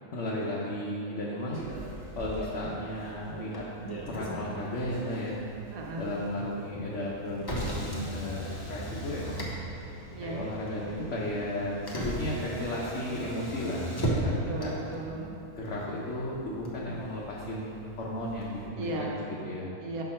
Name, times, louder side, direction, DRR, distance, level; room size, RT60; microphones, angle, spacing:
voice 1, 0.1-1.6 2.2-3.7 4.1-5.4 6.0-9.5 10.2-14.3 14.6-14.7 15.5-19.1 19.4-19.7, left 1 dB, 60° left, -5 dB, 1.1 m, -34 dB
Motor vehicle (road), 1.5-18.7, right 1 dB, 20° left, 0.6 m, -38 dB
voice 2, 5.7-6.1 10.1-10.5 14.5-15.3 18.8-19.3 19.8-20.0, right 2 dB, 70° right, -1 dB, 1.3 m, -36 dB
6.2 x 5.9 x 4.3 m, 3.0 s
omnidirectional pair, 1.6 m